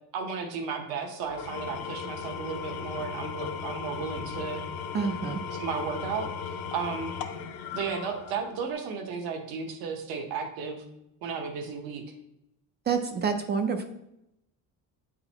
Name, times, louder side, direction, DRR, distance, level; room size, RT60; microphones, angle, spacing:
voice 1, 0.1-4.6 5.5-7.1 7.7-10.8 11.2-12.0, right 5 dB, 70° right, 4 dB, 1.1 m, -34 dB
Engine / Tools, 1.2-8.7, left 6 dB, 65° left, 0.8 m, -37 dB
voice 2, 4.9-5.4 12.9-13.9, right 6 dB, 30° right, 6 dB, 0.4 m, -28 dB
8.8 x 3.9 x 2.9 m, 0.84 s
cardioid pair, 145°, 39 cm